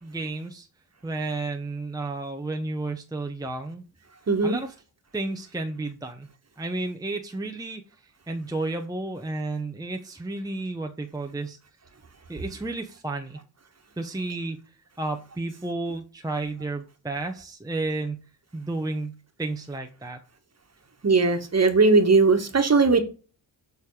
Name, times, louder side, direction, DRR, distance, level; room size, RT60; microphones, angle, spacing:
voice 1, 0.0-0.7 1.0-3.8 4.4-4.7 5.1-6.3 6.6-7.8 8.3-11.6 12.3-13.4 14.0-14.6 15.0-18.2 18.5-20.2, right 2 dB, 10° right, 0.8 m, -32 dB
voice 2, 4.3-4.6 21.0-23.0, right 3 dB, 35° right, 1.5 m, -19 dB
7.2 x 3.5 x 4.7 m
supercardioid pair, 55°, 46 cm